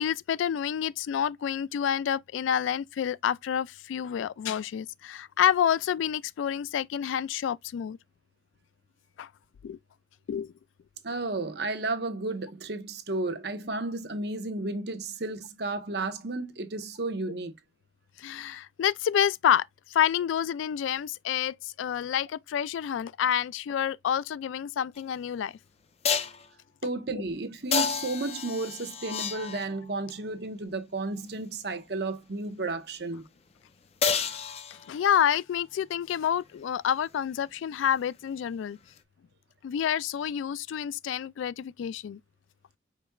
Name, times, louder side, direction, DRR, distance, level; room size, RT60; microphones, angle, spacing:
voice 1, 0.0-8.0 9.2-9.3 9.6-9.8 10.3-10.5 18.2-25.5 34.9-38.8 39.6-42.2, left 9 dB, 90° left, 0.3 m, -28 dB
voice 2, 11.0-17.5 26.8-33.2, right 2 dB, 60° right, 0.9 m, -33 dB
sound 1, 25.0-25.1 26.0-26.5 27.7-29.9 34.0-35.1 39.0-39.1, left 6 dB, 35° left, 0.5 m, -30 dB
5.1 x 4.2 x 2.2 m
head